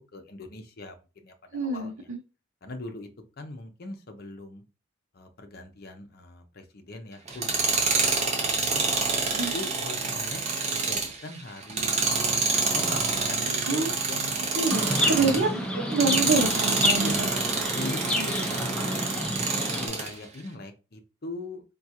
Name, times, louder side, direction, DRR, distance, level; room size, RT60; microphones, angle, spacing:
voice 1, 0.1-2.1 2.6-3.1 3.4-4.6 5.1-8.8 9.5-10.4 10.7-14.5 15.1-15.7 17.0-17.3 17.7-19.1 19.7-21.6, left 2 dB, 45° left, 5 dB, 0.6 m, -41 dB
voice 2, 1.5-2.2 9.4-9.5 13.6-13.9 14.5-17.3 18.2-18.3, right 3 dB, 85° right, 1 dB, 0.6 m, -27 dB
Tools, 7.3-15.5 15.9-20.1, right 4 dB, 30° right, 0.6 m, -27 dB
Chirp tweet, 14.7-19.9, left 1 dB, 5° left, 0.3 m, -29 dB
3.7 x 2.3 x 2.8 m, 0.31 s
head